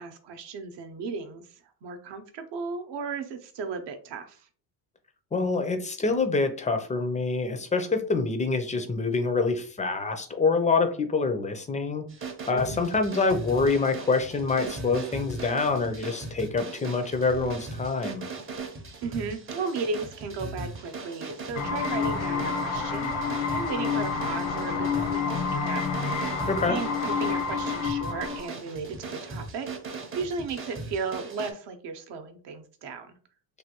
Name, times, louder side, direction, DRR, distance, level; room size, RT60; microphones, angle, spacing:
voice 1, 0.0-4.5 12.5-12.8 19.0-25.8 26.7-29.7 30.1-33.2, right 4 dB, 65° right, 7 dB, 0.7 m, -35 dB
voice 2, 5.3-12.0 12.5-18.2 26.5-26.8, left 4 dB, 15° left, 7 dB, 0.4 m, -26 dB
sound 1, 12.1-31.5, right 3 dB, 30° right, 0.6 m, -39 dB
sound 2, 21.5-28.5, left 5 dB, 85° left, 0.8 m, -29 dB
3.3 x 2.2 x 2.8 m, 0.43 s
cardioid pair, 105°, 47 cm